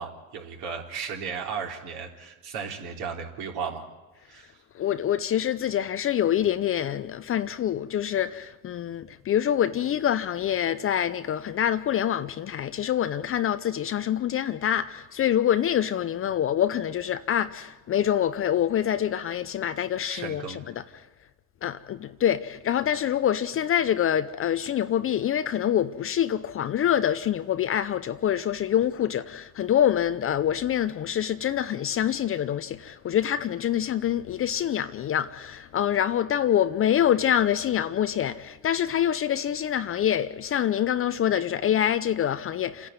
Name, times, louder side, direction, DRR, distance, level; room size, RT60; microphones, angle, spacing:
voice 1, 0.0-3.9 4.3-4.6 20.1-20.6, right 6 dB, 55° right, 3.7 m, -35 dB
voice 2, 4.7-21.1 21.6-42.9, left 10 dB, 30° left, 0.7 m, -26 dB
28.5 x 10.5 x 9.5 m
supercardioid pair, 105°, 45 cm